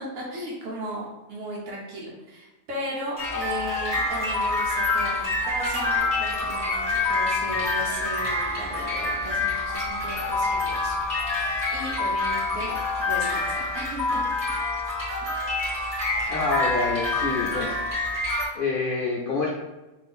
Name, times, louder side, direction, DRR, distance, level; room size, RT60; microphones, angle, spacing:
voice 1, 0.0-11.0 11.7-12.8 13.0-14.2, right 1 dB, 80° right, -3 dB, 1.1 m, -35 dB
sound 1, 3.2-18.5, left 3 dB, 25° right, 1.2 m, -26 dB
voice 2, 16.3-17.8 18.1-19.5, left 3 dB, 65° left, -4 dB, 0.5 m, -27 dB
2.7 x 2.5 x 3.5 m, 1.1 s
omnidirectional pair, 1.4 m